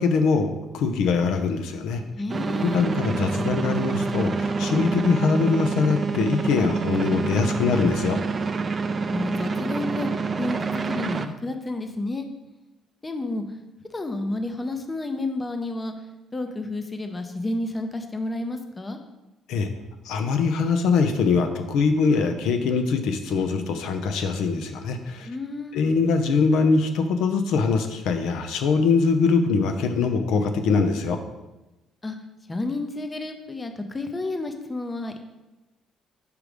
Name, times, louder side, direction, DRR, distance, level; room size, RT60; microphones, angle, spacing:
voice 1, 0.0-2.0 2.6-8.2 19.5-19.7 20.0-25.3 25.7-31.2, left 4 dB, 80° left, 7 dB, 0.6 m, -23 dB
voice 2, 2.1-2.9 9.0-10.1 10.4-12.3 13.0-13.4 13.9-15.9 16.3-19.0 25.2-25.8 32.0-32.2 32.5-35.2, left 2 dB, 15° left, 6 dB, 0.5 m, -30 dB
sound 1, 2.3-11.3, right 4 dB, 30° right, 0.4 m, -27 dB
5.1 x 4.8 x 5.0 m, 1.0 s
cardioid pair, 130°, 0 cm